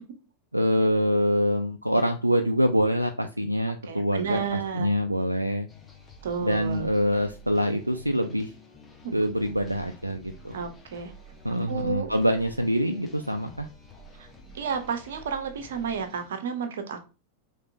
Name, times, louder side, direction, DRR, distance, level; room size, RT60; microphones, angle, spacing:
voice 1, 0.5-5.7 6.4-8.5 9.1-10.6 11.4-13.7, equal, 85° right, 6 dB, 0.4 m, -25 dB
voice 2, 3.9-4.9 6.2-6.9 9.0-9.1 10.5-11.1 11.7-12.1 14.5-17.0, right 6 dB, 60° right, 8 dB, 0.9 m, -31 dB
sound 1, 5.7-16.3, right 1 dB, 15° left, 1.1 m, -50 dB
5.1 x 3.3 x 2.7 m, 0.31 s
figure-of-eight pair, 90°, 0 cm